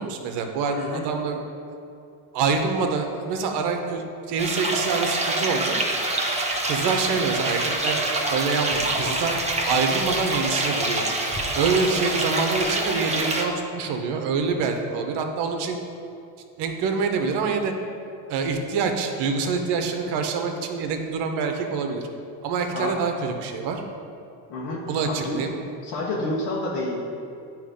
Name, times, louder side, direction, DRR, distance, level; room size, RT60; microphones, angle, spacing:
voice 1, 0.0-1.4 2.3-5.8 6.7-11.1 11.5-15.8 16.6-17.7 18.3-22.1 22.4-23.8 24.9-25.5, right 5 dB, 70° right, 5 dB, 1.0 m, -26 dB
voice 2, 0.7-1.0 22.7-23.0 24.5-24.8 25.1-25.4 25.8-27.0, left 2 dB, 70° left, -4 dB, 1.2 m, -29 dB
sound 1, 4.4-13.4, right 2 dB, 15° right, 1.0 m, -26 dB
9.1 x 3.1 x 5.1 m, 2.6 s
supercardioid pair, 95°, 42 cm